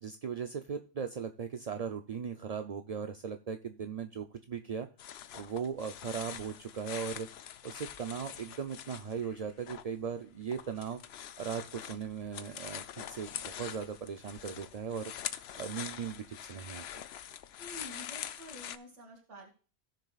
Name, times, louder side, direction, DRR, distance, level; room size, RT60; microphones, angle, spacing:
voice 1, 0.0-4.9 5.3-7.3 7.6-11.0 11.4-16.8, right 7 dB, 50° right, 7 dB, 0.4 m, -38 dB
sound 1, 5.0-9.9 10.2-18.8, left 10 dB, 65° left, 0.8 m, -44 dB
voice 2, 17.6-19.5, equal, 80° right, 0 dB, 2.2 m, -49 dB
17.5 x 6.6 x 2.4 m, 0.38 s
omnidirectional pair, 1.2 m